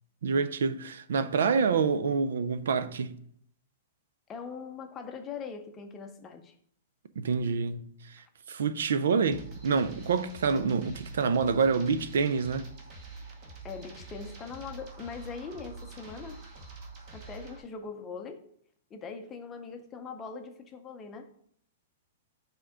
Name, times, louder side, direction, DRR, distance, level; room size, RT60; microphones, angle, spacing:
voice 1, 0.2-3.2 7.2-12.6, right 5 dB, 85° right, 0.5 m, -27 dB
voice 2, 4.3-6.6 13.6-16.4 17.1-18.5 18.9-21.3, left 5 dB, 15° left, 0.6 m, -41 dB
sound 1, 9.3-17.6, right 3 dB, 30° right, 1.1 m, -46 dB
5.7 x 3.7 x 4.9 m
supercardioid pair, 170°, 0 cm